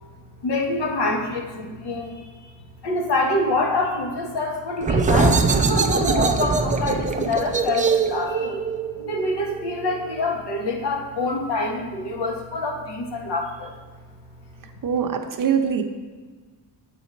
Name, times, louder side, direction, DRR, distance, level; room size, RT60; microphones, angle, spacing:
voice 1, 0.4-2.3 2.8-8.6 9.0-13.7, left 2 dB, 65° left, 1 dB, 1.4 m, -26 dB
sound 1, 4.8-10.2, right 4 dB, 20° right, 0.3 m, -22 dB
voice 2, 14.8-15.8, right 7 dB, 45° right, 5 dB, 0.7 m, -23 dB
8.2 x 4.1 x 5.2 m, 1.4 s
cardioid pair, 100°, 44 cm